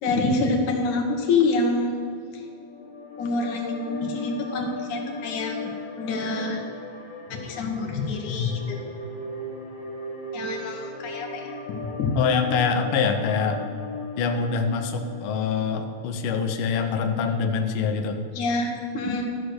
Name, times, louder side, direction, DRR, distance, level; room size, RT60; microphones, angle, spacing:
voice 1, 0.0-1.9 2.3-2.5 3.2-6.6 7.3-8.8 10.3-12.1 18.3-19.2, left 3 dB, 85° left, 2 dB, 2.8 m, -26 dB
sound 1, 2.5-15.9, left 2 dB, 45° left, 2.9 m, -37 dB
voice 2, 12.2-13.6 14.2-18.3, left 5 dB, 65° left, 5 dB, 1.3 m, -25 dB
13.0 x 6.7 x 6.3 m, 2.5 s
omnidirectional pair, 3.3 m